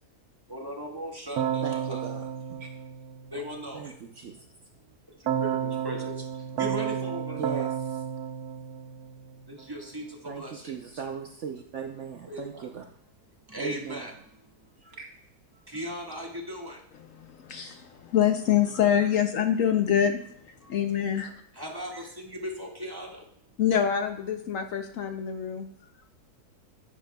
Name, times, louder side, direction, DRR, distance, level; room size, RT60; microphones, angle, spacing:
voice 1, 0.5-2.0 3.3-3.9 5.4-6.1 6.6-7.7 9.5-10.7 12.3-12.7 13.5-14.1 15.7-16.8 21.5-23.2, equal, 15° right, -1 dB, 1.5 m, -37 dB
Keyboard (musical), 1.4-3.7 5.3-9.5, right 9 dB, 75° right, 1.3 m, -32 dB
voice 2, 1.6-2.7 3.7-4.4 7.4-8.0 10.2-12.8 13.6-14.1 14.8-15.1, right 6 dB, 60° right, 3 dB, 0.9 m, -38 dB
voice 3, 17.2-20.2 20.7-21.3 23.6-25.7, left 9 dB, 65° left, 6 dB, 1.0 m, -25 dB
10.0 x 9.8 x 2.2 m, 0.67 s
omnidirectional pair, 1.7 m